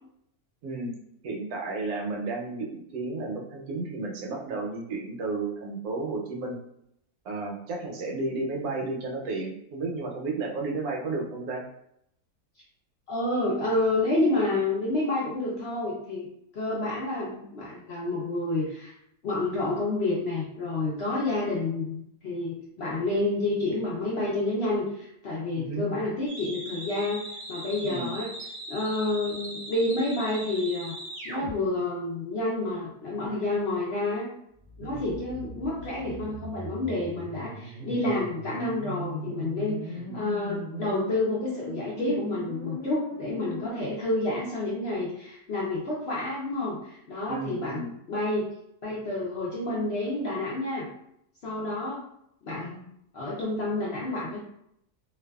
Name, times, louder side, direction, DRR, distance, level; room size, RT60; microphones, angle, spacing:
voice 1, 0.6-0.9 1.2-6.6 7.2-11.6 25.5-25.9 27.8-28.1 34.8-35.1 37.8-38.1 40.0-40.3 47.3-47.9, right 3 dB, 75° right, -1 dB, 1.0 m, -33 dB
voice 2, 13.1-16.3 16.5-18.9 19.2-27.2 27.5-28.3 28.7-30.9 31.2-34.3 34.8-48.5 48.8-50.9 51.4-52.0 52.4-54.4, left 2 dB, 70° left, -6 dB, 0.6 m, -29 dB
sound 1, 26.3-31.5 34.6-43.7, equal, 50° right, 0.4 m, -39 dB
2.5 x 2.2 x 2.2 m, 0.75 s
omnidirectional pair, 1.7 m